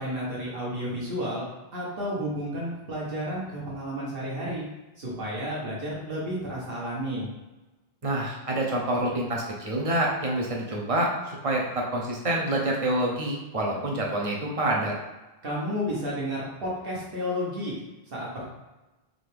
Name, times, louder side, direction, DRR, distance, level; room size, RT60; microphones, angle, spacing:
voice 1, 0.0-4.7 5.0-7.3 15.4-17.8 18.1-18.5, equal, 65° right, -5 dB, 1.4 m, -32 dB
voice 2, 8.0-14.9, right 1 dB, 35° right, -2 dB, 0.8 m, -27 dB
3.8 x 3.3 x 3.3 m, 1.1 s
omnidirectional pair, 1.0 m